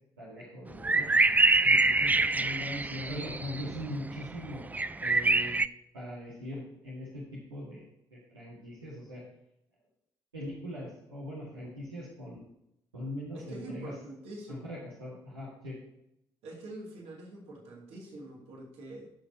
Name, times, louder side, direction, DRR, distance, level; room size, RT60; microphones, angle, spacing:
voice 1, 0.2-1.1 1.6-4.6 5.0-5.6 5.9-9.2 10.3-12.4 12.9-14.0 14.5-15.8, left 1 dB, 85° right, -7 dB, 1.8 m, -41 dB
sound 1, 0.8-3.8 4.1-5.7, right 3 dB, 15° right, 0.4 m, -25 dB
voice 2, 13.3-14.6 16.4-19.1, right 1 dB, 60° right, -2 dB, 2.7 m, -45 dB
15.0 x 6.7 x 2.8 m, 0.81 s
figure-of-eight pair, 45°, 12 cm